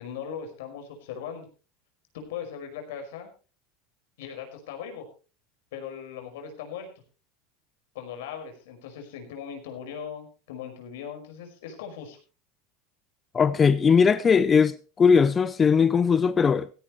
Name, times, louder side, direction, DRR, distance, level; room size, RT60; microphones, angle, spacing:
voice 1, 0.0-1.5 2.1-3.3 4.2-5.0 5.7-6.9 7.9-12.2, left 8 dB, 90° left, 5.2 m, -39 dB
voice 2, 13.3-16.7, left 6 dB, 20° left, 0.6 m, -20 dB
16.0 x 16.0 x 3.2 m
supercardioid pair, 145°, 0 cm